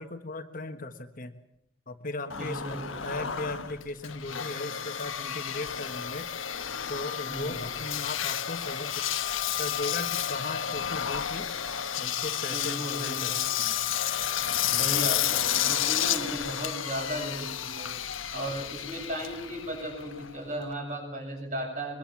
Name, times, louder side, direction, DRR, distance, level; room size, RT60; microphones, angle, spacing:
voice 1, 0.0-1.3 1.9-6.3 6.9-9.0 9.6-11.5 12.0-13.3 13.6-13.8 14.6-14.8, left 2 dB, 40° left, 6 dB, 1.5 m, -37 dB
Engine, 2.3-20.7, left 10 dB, 80° left, 1.4 m, -31 dB
voice 2, 2.4-3.3 7.3-7.7 12.5-13.5 14.8-22.0, equal, 35° right, 2 dB, 7.5 m, -36 dB
23.0 x 22.5 x 7.3 m, 0.77 s
head